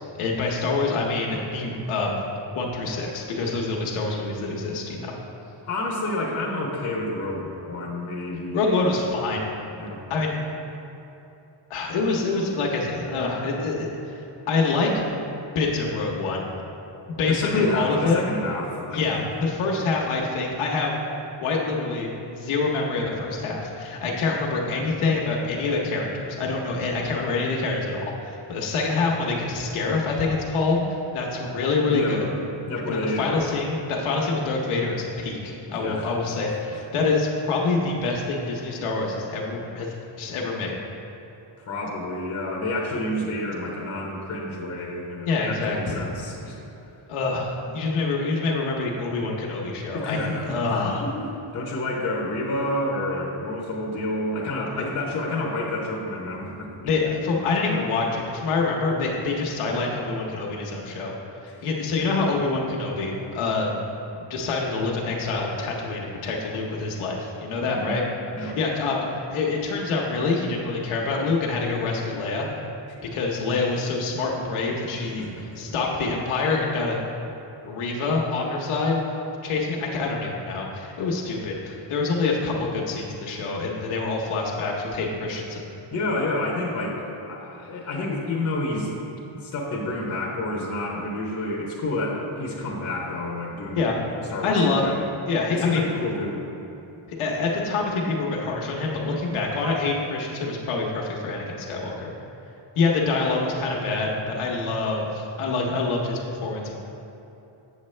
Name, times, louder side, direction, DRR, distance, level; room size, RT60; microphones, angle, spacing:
voice 1, 0.1-2.2 2.5-5.1 8.5-9.5 10.1-10.4 11.7-14.9 15.5-16.4 17.1-18.2 18.9-21.0 21.4-32.3 32.9-40.8 45.3-46.0 47.1-51.0 56.8-61.1 61.4-63.8 64.2-68.0 68.4-72.5 73.1-77.0 77.6-79.0 79.4-85.7 93.8-94.0 94.4-94.8 95.3-95.9 97.1-102.1 102.8-106.8, left 3 dB, 90° left, -2 dB, 1.0 m, -26 dB
voice 2, 5.6-8.9 9.8-10.1 17.3-19.3 31.9-32.2 32.7-33.4 35.7-36.1 41.7-46.6 49.9-51.3 51.5-56.9 61.5-61.6 67.7-68.0 68.3-68.6 75.0-75.6 85.9-88.9 89.3-93.9 94.3-95.0 95.5-96.5, left 1 dB, 30° left, -2 dB, 0.8 m, -29 dB
8.1 x 6.5 x 3.2 m, 2.9 s
wide cardioid pair, 175°, 49 cm